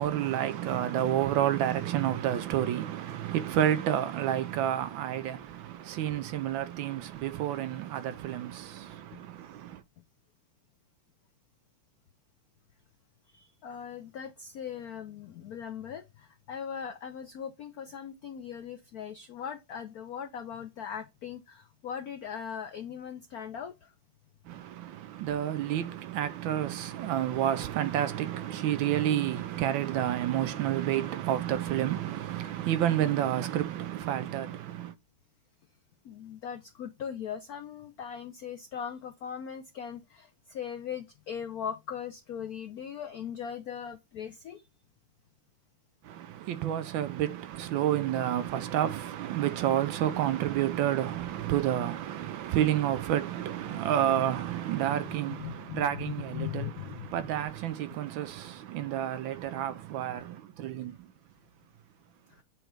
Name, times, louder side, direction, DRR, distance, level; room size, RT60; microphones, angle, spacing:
voice 1, 0.0-9.8 24.5-34.9 46.0-61.0, right 11 dB, 75° right, 1.2 m, -30 dB
voice 2, 13.6-23.7 36.0-44.6 53.7-53.8 54.9-57.2, left 8 dB, 85° left, 0.8 m, -39 dB
7.7 x 3.0 x 4.7 m
omnidirectional pair, 2.4 m